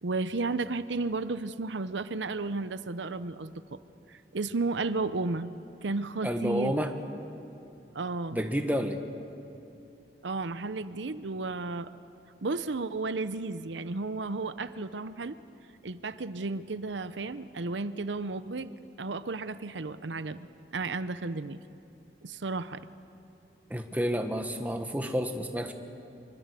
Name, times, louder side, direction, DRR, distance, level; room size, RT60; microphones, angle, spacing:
voice 1, 0.0-3.8 4.1-5.5 5.8-6.7 7.9-8.4 10.2-11.9 12.4-15.4 15.8-20.5 20.7-21.6 22.2-22.9, right 3 dB, 85° right, 13 dB, 0.8 m, -33 dB
voice 2, 6.2-6.9 8.3-9.0 23.7-25.7, equal, 10° right, 5 dB, 1.4 m, -30 dB
25.0 x 24.5 x 8.3 m, 2.7 s
head